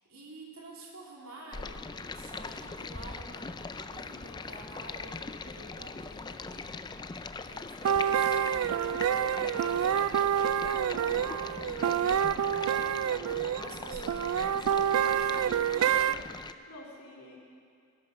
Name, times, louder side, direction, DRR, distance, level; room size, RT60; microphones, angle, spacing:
voice 1, 0.0-12.4 13.2-15.9, right 2 dB, 70° right, -3 dB, 3.1 m, -50 dB
Stream, 1.5-16.5, left 4 dB, 20° left, 0.4 m, -41 dB
sound 1, 7.8-16.1, right 9 dB, 90° right, 0.3 m, -28 dB
voice 2, 15.9-17.4, left 1 dB, 80° left, -2 dB, 3.2 m, -50 dB
20.5 x 11.5 x 5.5 m, 2.3 s
head